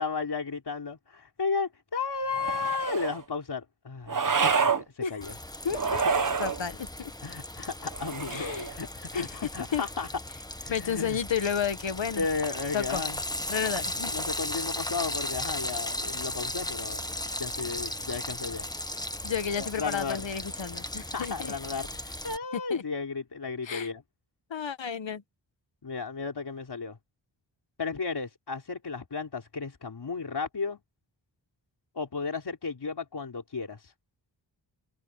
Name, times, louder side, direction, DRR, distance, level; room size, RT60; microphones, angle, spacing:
voice 1, 0.0-4.6 5.1-5.3 7.2-10.1 10.6-11.2 12.2-13.2 14.1-17.1 17.4-18.7 19.6-20.2 21.1-24.0 25.8-27.0 27.8-30.8 31.9-33.9, left 4 dB, 60° left, 4.0 m, -34 dB
sound 1, 2.3-3.2 4.1-4.8 5.7-6.6 7.9-8.8, right 5 dB, 45° right, 1.4 m, -27 dB
voice 2, 5.0-5.3 5.6-6.0 6.4-7.1 8.3-8.7 9.1-9.3 9.7-9.8 10.7-12.3 12.7-13.0 13.5-14.1 19.2-21.5 22.7-22.8 23.6-23.9 24.5-25.2, left 7 dB, 75° left, 1.8 m, -32 dB
Frying (food), 5.2-22.4, left 1 dB, 10° left, 1.3 m, -36 dB
wide cardioid pair, 75°, 45 cm